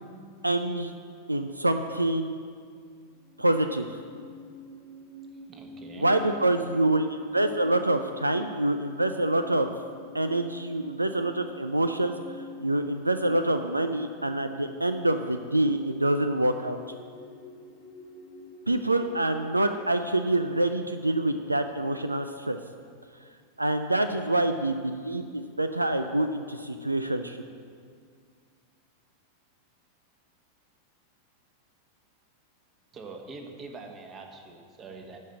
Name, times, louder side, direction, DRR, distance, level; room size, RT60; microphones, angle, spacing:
voice 1, 0.4-0.9 1.3-2.3 3.4-3.9 6.0-9.7 10.1-12.1 12.6-16.8 18.7-22.6 23.6-27.4, right 1 dB, 85° right, 8 dB, 0.4 m, -26 dB
sound 1, 3.0-20.2, left 2 dB, 15° left, 1.3 m, -47 dB
voice 2, 5.4-6.1 32.9-35.2, right 3 dB, 25° right, 4 dB, 1.3 m, -44 dB
12.0 x 5.3 x 7.6 m, 2.1 s
figure-of-eight pair, 90°, 0 cm